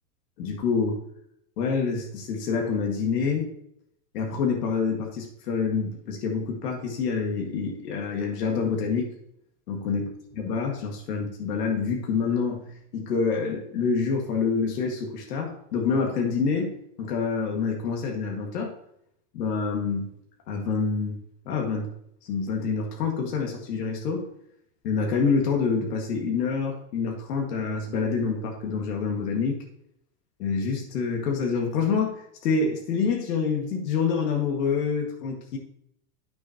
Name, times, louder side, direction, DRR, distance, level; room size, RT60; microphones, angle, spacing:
voice 1, 0.4-1.0 1.6-3.5 4.1-9.1 9.7-10.1 10.4-18.7 19.3-20.1 20.5-21.2 21.5-21.9 22.2-24.2 24.8-29.6 30.4-35.6, left 5 dB, 80° left, 1 dB, 2.0 m, -27 dB
9.8 x 6.6 x 2.9 m, 0.72 s
supercardioid pair, 170°, 47 cm